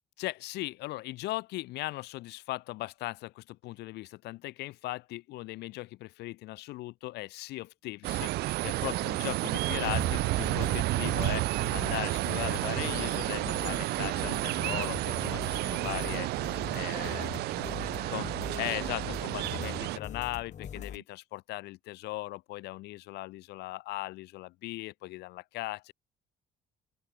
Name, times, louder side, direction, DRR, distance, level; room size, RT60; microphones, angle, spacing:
voice 1, 0.2-17.3 18.1-18.3 18.6-25.9, left 18 dB, 85° left, 2.0 m, -38 dB
sound 1, 8.0-20.0, right 19 dB, 75° right, 0.4 m, -31 dB
voice 2, 8.7-9.2 16.9-20.0 20.7-21.0, right 9 dB, 50° right, 3.1 m, -49 dB
sound 2, 9.7-21.0, left 8 dB, 45° left, 2.7 m, -42 dB
open air
cardioid pair, 110°, 17 cm